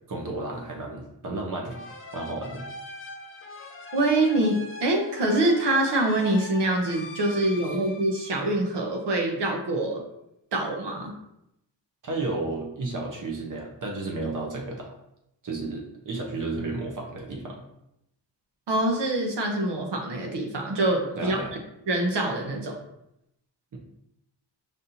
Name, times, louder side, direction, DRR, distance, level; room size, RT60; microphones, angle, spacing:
voice 1, 0.1-1.8 2.1-2.6 12.0-14.9 15.4-17.6 21.2-21.5, right 2 dB, 45° right, 0 dB, 0.7 m, -32 dB
sound 1, 1.7-9.1, left 2 dB, 30° left, 0.4 m, -42 dB
voice 2, 3.9-10.0 10.5-11.1 18.7-21.4 21.9-22.8, right 2 dB, 70° right, 1 dB, 0.9 m, -25 dB
5.2 x 2.6 x 2.8 m, 0.81 s
wide cardioid pair, 180°, 43 cm